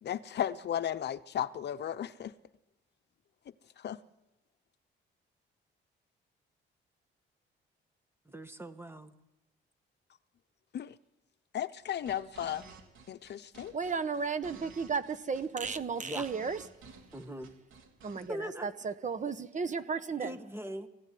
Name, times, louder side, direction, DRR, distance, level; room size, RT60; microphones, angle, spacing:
voice 1, 0.0-2.3 3.8-4.0 10.7-10.9 11.5-12.6 13.1-13.7, left 10 dB, 60° left, 0.9 m, -35 dB
voice 2, 8.3-9.1 16.0-16.3 17.1-17.5 18.1-18.7 20.2-20.9, equal, 10° right, 1.9 m, -41 dB
sound 1, 11.8-18.3, right 5 dB, 85° right, 3.6 m, -53 dB
voice 3, 13.7-16.6 18.0-20.3, right 5 dB, 40° right, 1.3 m, -34 dB
22.5 x 16.0 x 9.5 m
cardioid pair, 90°, 20 cm